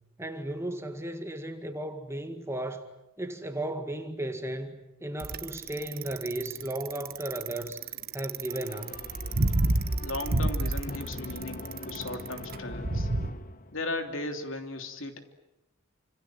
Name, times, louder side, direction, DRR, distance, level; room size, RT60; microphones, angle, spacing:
voice 1, 0.2-2.9 3.2-7.8 8.1-9.1, right 1 dB, 10° right, 2.0 m, -35 dB
Bicycle, 5.2-13.3, right 2 dB, 45° right, 1.2 m, -29 dB
sound 1, 8.5-14.1, left 2 dB, 40° left, 1.1 m, -42 dB
voice 2, 10.0-13.1 13.7-15.2, left 2 dB, 60° left, 3.2 m, -36 dB
29.0 x 27.0 x 7.7 m
head